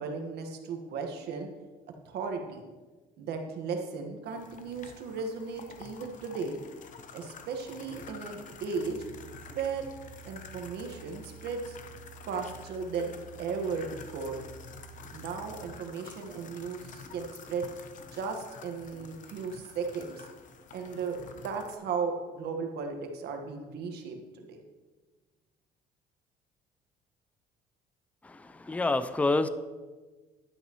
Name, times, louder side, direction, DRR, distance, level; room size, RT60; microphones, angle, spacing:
voice 1, 0.0-1.5 2.0-2.7 3.2-6.6 7.1-9.1 9.5-9.9 10.2-11.8 12.3-13.1 13.4-14.4 15.1-17.7 18.1-20.3 20.7-21.2 21.4-24.6, right 5 dB, 75° right, 4 dB, 1.5 m, -36 dB
sound 1, 4.3-21.8, left 6 dB, 50° left, 0.9 m, -49 dB
sound 2, 8.7-15.7, right 9 dB, 50° right, 1.1 m, -51 dB
voice 2, 28.2-29.5, left 2 dB, 10° left, 12 dB, 0.4 m, -28 dB
11.5 x 9.3 x 3.0 m, 1.3 s
cardioid pair, 110°, 17 cm